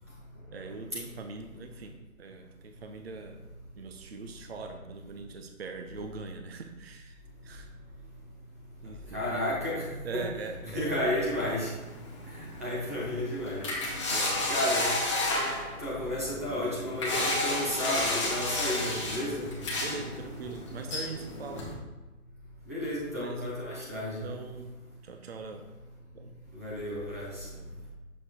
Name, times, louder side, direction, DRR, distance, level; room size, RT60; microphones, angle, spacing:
voice 1, 0.5-3.4 3.8-7.7 8.8-9.3 10.0-10.9 14.1-14.5 18.9-19.4 19.8-21.7 23.1-23.6 24.2-24.8 25.0-25.7 26.1-26.4 27.4-27.9, right 4 dB, 45° right, 6 dB, 0.6 m, -42 dB
voice 2, 9.1-9.9 10.1-10.2 10.7-11.7 12.4-13.7 14.5-15.0 15.8-19.5 22.7-24.2 26.5-27.3, left 1 dB, 10° right, -7 dB, 0.7 m, -32 dB
sound 1, 11.2-21.7, left 2 dB, 20° left, 0.9 m, -32 dB
6.4 x 5.5 x 3.0 m, 1.2 s
hypercardioid pair, 160°, 44 cm